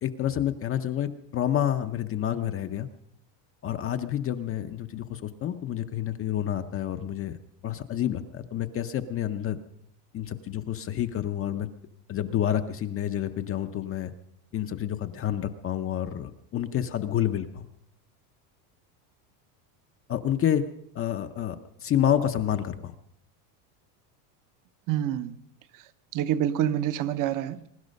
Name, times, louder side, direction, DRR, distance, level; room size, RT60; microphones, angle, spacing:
voice 1, 0.0-2.9 3.6-7.4 7.6-9.6 10.1-11.7 12.1-14.1 14.5-17.7 20.1-20.6 20.9-22.9, left 10 dB, 30° left, 7 dB, 0.7 m, -29 dB
voice 2, 24.9-25.4 26.1-27.7, right 11 dB, 40° right, 13 dB, 0.9 m, -27 dB
23.0 x 11.5 x 5.3 m, 0.77 s
supercardioid pair, 140°, 49 cm